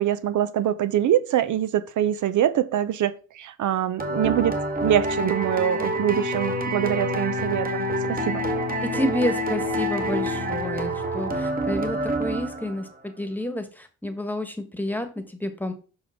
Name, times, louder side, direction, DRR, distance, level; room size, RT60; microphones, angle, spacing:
voice 1, 0.0-4.5 4.8-8.4, right 11 dB, 80° right, 0.6 m, -24 dB
sound 1, 4.0-12.9, right 1 dB, 30° right, 1.3 m, -27 dB
Bowed string instrument, 5.9-12.5, left 11 dB, 80° left, 0.6 m, -37 dB
voice 2, 8.8-15.7, left 1 dB, 5° left, 1.2 m, -29 dB
7.2 x 5.3 x 3.6 m
cardioid pair, 100°, 30 cm